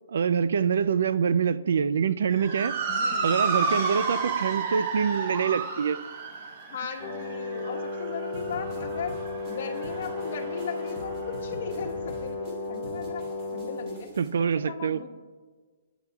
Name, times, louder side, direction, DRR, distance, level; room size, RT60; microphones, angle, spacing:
voice 1, 0.1-2.8 3.2-6.0 14.2-15.0, right 7 dB, 65° right, 0.3 m, -25 dB
Motor vehicle (road) / Siren, 2.3-10.9, right 4 dB, 35° right, 1.0 m, -31 dB
voice 2, 2.9-3.3 6.7-9.2 9.5-14.1 14.4-15.1, left 6 dB, 55° left, 1.2 m, -37 dB
Brass instrument, 7.0-14.0, left 3 dB, 10° left, 2.9 m, -34 dB
sound 1, 8.3-14.3, equal, 20° right, 3.4 m, -45 dB
19.5 x 10.5 x 2.3 m
hypercardioid pair, 170°, 0 cm